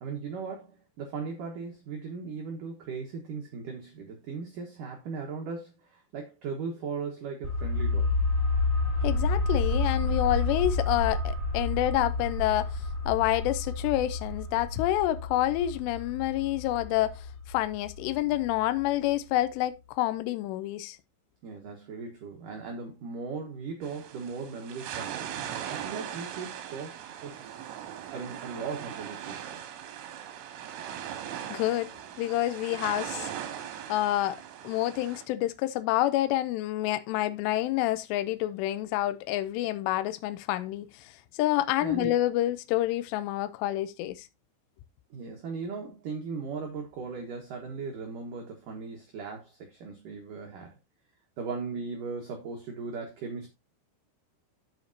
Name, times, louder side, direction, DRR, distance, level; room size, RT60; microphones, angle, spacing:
voice 1, 0.0-8.1 21.4-29.6 41.8-42.2 45.1-50.7 51.4-53.5, right 5 dB, 65° right, 2.2 m, -38 dB
sound 1, 7.4-18.8 19.1-19.2, left 3 dB, 20° right, 2.3 m, -30 dB
voice 2, 9.0-21.0 31.5-33.3 33.9-44.3, left 14 dB, 90° left, 2.5 m, -28 dB
sound 2, 23.8-35.3, right 10 dB, 80° right, 3.8 m, -39 dB
15.0 x 5.1 x 2.7 m
omnidirectional pair, 5.6 m